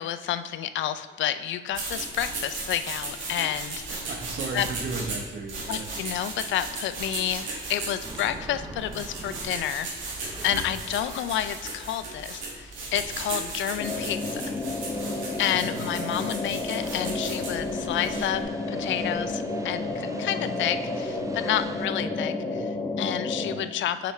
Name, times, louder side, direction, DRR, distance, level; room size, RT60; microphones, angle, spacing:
voice 1, 0.0-4.0 4.5-4.7 5.7-9.9 10.4-14.4 15.4-24.1, left 11 dB, 70° left, 11 dB, 0.4 m, -30 dB
sound 1, 1.7-18.4, right 3 dB, 80° right, 1.9 m, -36 dB
voice 2, 3.9-5.9 15.5-16.3, right 3 dB, 65° right, 2 dB, 1.0 m, -36 dB
sound 2, 8.0-21.9, right 2 dB, 15° right, 0.6 m, -47 dB
sound 3, 13.8-23.6, left 2 dB, 30° left, 1.0 m, -31 dB
6.7 x 4.9 x 3.2 m, 1.4 s
cardioid pair, 90°, 20 cm